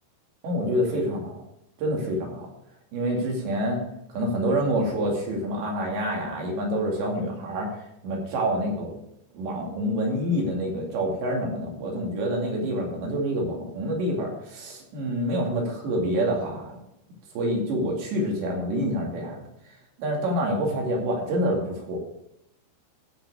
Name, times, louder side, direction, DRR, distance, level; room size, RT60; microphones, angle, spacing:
voice 1, 0.4-1.4 1.8-2.5 2.9-3.8 4.1-7.7 8.0-8.9 9.3-16.8 17.4-19.4 20.0-22.0, equal, 70° right, -1 dB, 4.6 m, -27 dB
14.5 x 6.1 x 4.7 m, 0.80 s
omnidirectional pair, 5.4 m